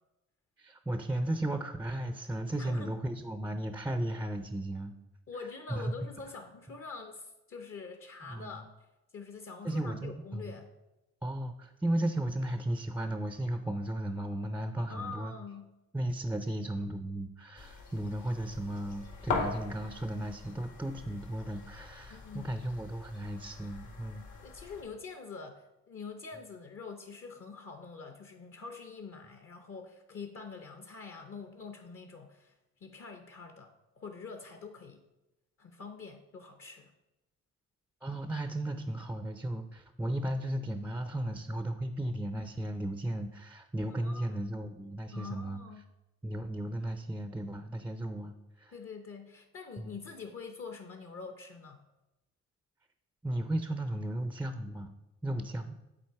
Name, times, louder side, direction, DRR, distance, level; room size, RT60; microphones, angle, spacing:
voice 1, 0.6-4.9 5.7-5.9 8.2-8.6 9.6-10.6 11.2-15.3 15.9-24.2 38.0-45.6 46.2-48.7 49.8-50.0 53.2-54.9 55.2-55.8, right 1 dB, 5° right, 8 dB, 0.4 m, -35 dB
voice 2, 2.6-2.9 5.3-8.7 9.1-10.7 14.9-15.7 22.1-22.5 24.4-32.6 32.8-35.0 35.6-36.9 43.9-44.4 45.1-45.8 48.7-51.8, left 4 dB, 45° left, 6 dB, 0.7 m, -45 dB
sound 1, 17.6-24.8, left 4 dB, 75° left, 1.8 m, -41 dB
7.7 x 3.9 x 4.6 m, 0.96 s
cardioid pair, 90°, 30 cm